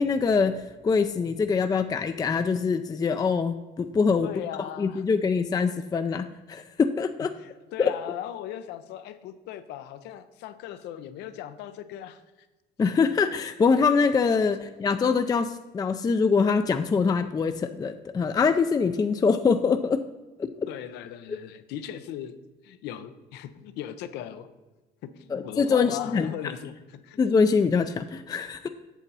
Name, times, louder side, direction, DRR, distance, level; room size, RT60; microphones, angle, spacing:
voice 1, 0.0-4.3 4.8-7.3 7.8-7.9 12.8-20.0 20.4-20.5 25.3-26.3 27.2-28.7, left 5 dB, 20° left, 8 dB, 0.4 m, -24 dB
voice 2, 4.2-5.0 7.4-12.5 20.7-22.4 22.6-24.5 25.0-27.2, left 11 dB, 90° left, 11 dB, 0.7 m, -38 dB
8.1 x 7.2 x 4.0 m, 1.2 s
cardioid pair, 110°, 17 cm